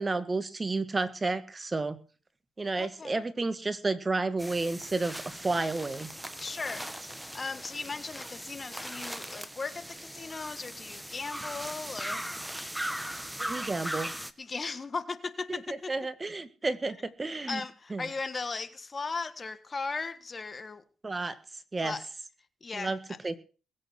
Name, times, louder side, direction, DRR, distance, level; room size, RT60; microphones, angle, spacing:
voice 1, 0.0-2.0 2.6-6.1 13.4-14.1 15.5-15.6 15.9-17.6 17.9-18.0 21.0-21.4 21.7-22.0 22.7-23.0 23.2-23.4, right 3 dB, 25° right, 1.8 m, -31 dB
voice 2, 2.8-3.2 6.4-6.9 7.3-12.3 14.4-15.9 17.5-20.8 21.8-22.0 22.6-23.2, left 4 dB, 30° left, 1.5 m, -37 dB
sound 1, 4.4-14.3, equal, 5° right, 1.4 m, -39 dB
21.0 x 8.5 x 6.5 m
cardioid pair, 90°, 0 cm